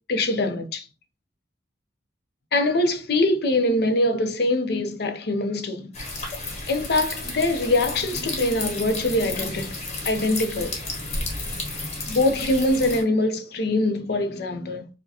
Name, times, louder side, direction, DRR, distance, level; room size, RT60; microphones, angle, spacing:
voice 1, 0.1-0.9 2.5-5.9 6.7-9.8 10.0-10.8 12.1-14.9, left 2 dB, 55° left, 0.5 m, -23 dB
sound 1, 5.9-13.0, left 2 dB, 35° left, 1.0 m, -32 dB
4.7 x 2.1 x 2.7 m
head